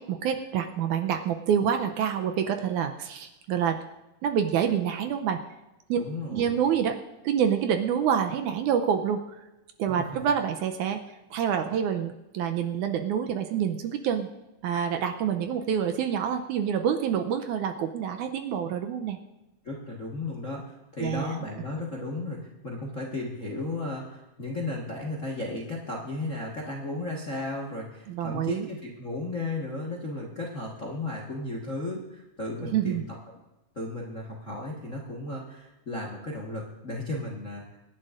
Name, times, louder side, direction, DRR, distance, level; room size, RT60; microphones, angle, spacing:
voice 1, 0.0-3.8 4.2-5.4 5.9-6.0 6.3-7.0 7.2-9.4 9.8-14.3 14.6-19.2 21.0-21.4 28.1-28.7 32.6-33.0, right 8 dB, 80° right, 6 dB, 2.0 m, -27 dB
voice 2, 6.0-6.6 19.6-33.0 33.7-37.8, left 2 dB, 40° left, -2 dB, 1.0 m, -34 dB
26.0 x 11.0 x 2.6 m, 1.0 s
omnidirectional pair, 3.9 m